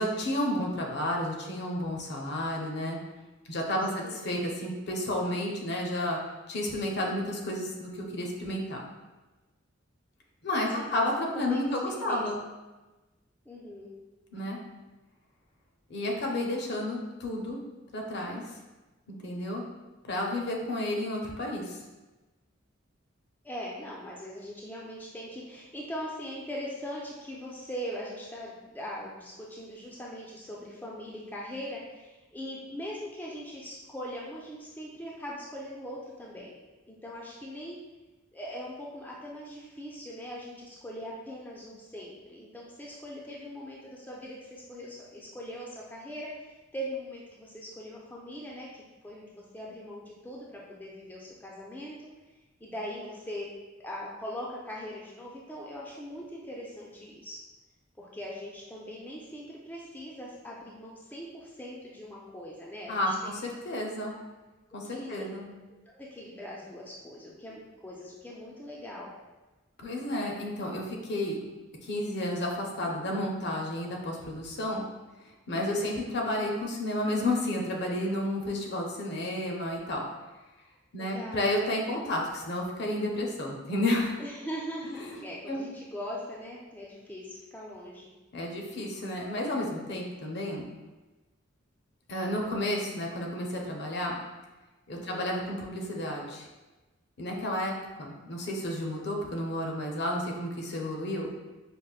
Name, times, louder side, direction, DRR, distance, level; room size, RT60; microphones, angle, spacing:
voice 1, 0.0-3.0 3.5-6.2 6.5-8.8 10.4-12.4 14.3-14.6 15.9-17.6 17.9-18.4 19.2-19.6 20.0-21.8 62.9-64.1 64.7-65.5 69.8-71.4 71.8-74.8 75.5-80.0 80.9-84.2 85.0-85.6 88.3-90.7 92.1-94.2 94.9-96.4 97.2-97.7 98.0-101.3, left 1 dB, 55° left, 0 dB, 0.6 m, -31 dB
voice 2, 10.7-12.3 13.5-13.9 23.4-36.6 36.9-37.8 38.3-52.0 52.6-53.5 53.8-57.4 58.0-63.3 64.9-65.1 65.9-69.1 75.5-75.9 80.9-81.5 84.2-88.1 95.0-95.3, equal, 10° left, -5 dB, 0.3 m, -41 dB
5.1 x 2.0 x 2.4 m, 1.1 s
head